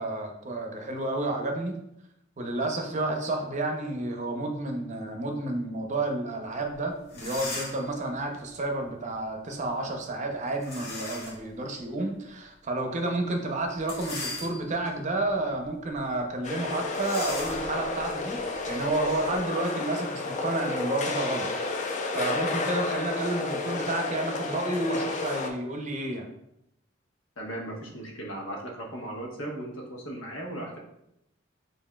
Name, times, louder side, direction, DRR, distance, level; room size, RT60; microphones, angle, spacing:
voice 1, 0.0-1.8 2.4-18.4 18.7-21.5 22.1-26.3, right 2 dB, 35° right, 3 dB, 0.6 m, -30 dB
sound 1, 6.7-6.8 7.1-7.9 10.6-11.5 12.0-12.1 13.8-14.9 15.5-15.7 15.9-16.1 16.9-19.4, left 2 dB, 55° left, 1.2 m, -38 dB
sound 2, 16.4-25.5, left 3 dB, 40° left, 0.5 m, -31 dB
voice 2, 27.4-30.8, right 1 dB, 90° left, -1 dB, 1.1 m, -37 dB
7.1 x 2.6 x 2.2 m, 0.81 s
head